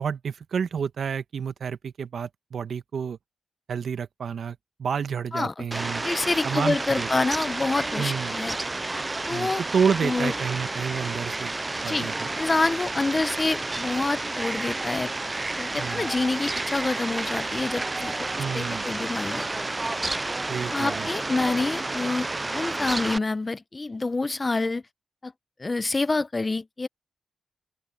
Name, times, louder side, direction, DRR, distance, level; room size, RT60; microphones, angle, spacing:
voice 1, 0.0-3.2 3.7-6.0 6.4-7.1 8.0-8.4 9.3-11.5 11.8-12.3 15.7-16.1 18.4-18.9 20.5-21.1, right 6 dB, 70° right, 1.3 m, -29 dB
Fowl, 5.7-23.2, right 2 dB, 25° right, 0.3 m, -30 dB
voice 2, 6.0-8.6 9.3-9.6 10.0-10.3 11.9-12.1 12.4-15.1 15.6-19.4 19.8-19.9 20.7-22.3 22.5-24.8 25.2-25.3 25.6-26.9, left 3 dB, 30° left, 0.8 m, -27 dB
open air
cardioid pair, 60°, 0 cm